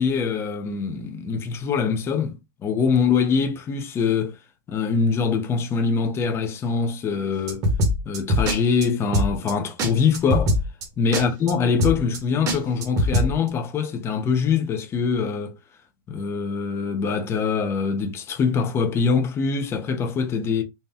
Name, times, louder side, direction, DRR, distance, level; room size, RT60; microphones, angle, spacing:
voice 1, 0.0-4.4 4.7-7.7 8.0-10.6 11.0-15.5 16.1-20.6, left 5 dB, 20° left, 0.6 m, -23 dB
sound 1, 7.5-8.6 8.8-8.9 9.1-9.5 9.8-9.9 10.1-10.8 11.1-11.5 11.8-12.2 12.5-13.3, equal, 30° right, 1.1 m, -21 dB
4.1 x 2.2 x 3.5 m
supercardioid pair, 155°, 12 cm